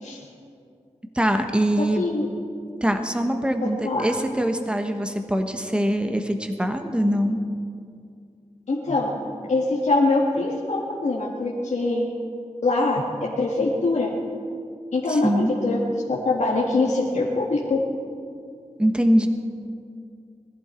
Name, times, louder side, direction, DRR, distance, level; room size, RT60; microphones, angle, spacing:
voice 1, 1.1-2.1 2.8-7.4 15.1-15.5 18.8-19.3, equal, 10° right, 5 dB, 1.3 m, -23 dB
voice 2, 1.8-2.3 3.8-4.0 8.7-9.2 9.5-12.1 12.6-14.1 14.9-15.8 16.1-17.8, left 2 dB, 70° left, -4 dB, 1.9 m, -23 dB
21.5 x 14.5 x 4.5 m, 2.3 s
wide cardioid pair, 95°, 12 cm